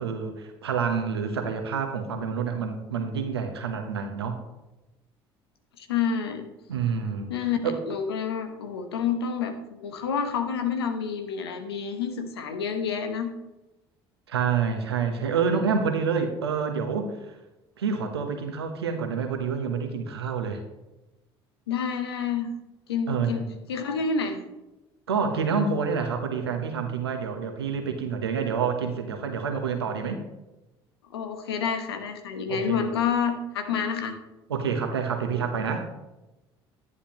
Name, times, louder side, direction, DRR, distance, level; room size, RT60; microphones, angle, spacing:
voice 1, 0.0-4.4 6.7-7.3 7.6-7.8 14.3-17.3 17.8-20.6 23.1-23.5 25.1-30.2 32.5-32.9 34.5-35.9, right 6 dB, 90° right, 6 dB, 1.1 m, -28 dB
voice 2, 5.8-6.5 7.3-13.3 21.7-22.5 22.9-23.4 23.7-24.4 31.1-34.1, left 6 dB, 85° left, 7 dB, 1.1 m, -28 dB
11.0 x 9.8 x 3.0 m, 1.0 s
hypercardioid pair, 60°, 13 cm